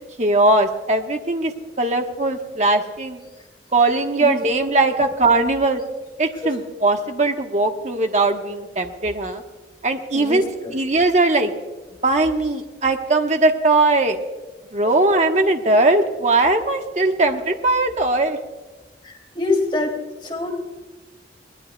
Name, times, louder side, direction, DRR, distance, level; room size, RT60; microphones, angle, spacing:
voice 1, 0.2-1.5 1.8-3.2 3.7-5.8 6.2-9.4 9.8-10.5 10.7-11.5 12.0-14.2 14.7-18.4, right 2 dB, 40° right, 4 dB, 1.2 m, -19 dB
voice 2, 10.1-10.7 19.0-20.0 20.2-20.6, left 2 dB, 25° left, 1 dB, 2.9 m, -25 dB
22.0 x 18.5 x 2.3 m, 1.3 s
head